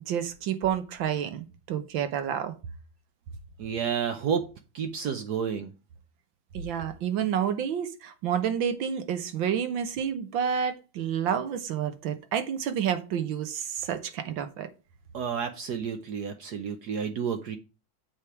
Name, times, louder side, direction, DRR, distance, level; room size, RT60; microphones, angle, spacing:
voice 1, 0.0-2.5 6.5-14.7, right 8 dB, 85° right, 1.8 m, -29 dB
voice 2, 3.6-4.4 4.7-5.7 15.1-17.6, right 7 dB, 65° right, 1.2 m, -30 dB
7.5 x 5.0 x 4.9 m
omnidirectional pair, 2.1 m